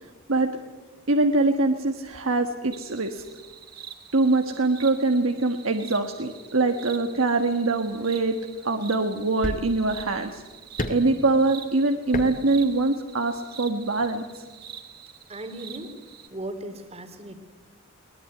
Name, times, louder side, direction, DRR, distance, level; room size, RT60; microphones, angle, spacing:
voice 1, 1.1-3.2 4.1-8.4 8.6-10.4 10.9-14.4, right 2 dB, 70° right, 5 dB, 1.5 m, -23 dB
sound 1, 2.7-16.3, right 8 dB, 45° right, 2.5 m, -46 dB
sound 2, 7.8-7.9 8.9-9.0 9.4-10.0 10.8-11.2 12.1-12.4 12.7-12.8, left 1 dB, 40° left, 2.2 m, -31 dB
voice 2, 15.3-15.9 16.3-17.4, right 1 dB, 30° right, 8 dB, 2.7 m, -37 dB
22.5 x 20.0 x 9.3 m, 1.3 s
head